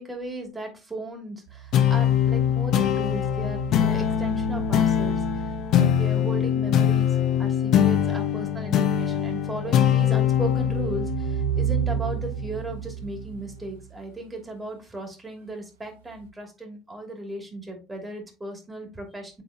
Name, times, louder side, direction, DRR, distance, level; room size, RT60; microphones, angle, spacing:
voice 1, 0.0-5.5 5.8-19.4, right 2 dB, 15° right, 1 dB, 2.8 m, -36 dB
sound 1, 1.5-6.1 9.5-14.1 16.2-16.3, right 9 dB, 80° right, 1.0 m, -33 dB
sound 2, 1.7-12.6, left 10 dB, 55° left, 0.9 m, -23 dB
8.9 x 4.0 x 2.9 m, 0.31 s
hypercardioid pair, 65°, 0 cm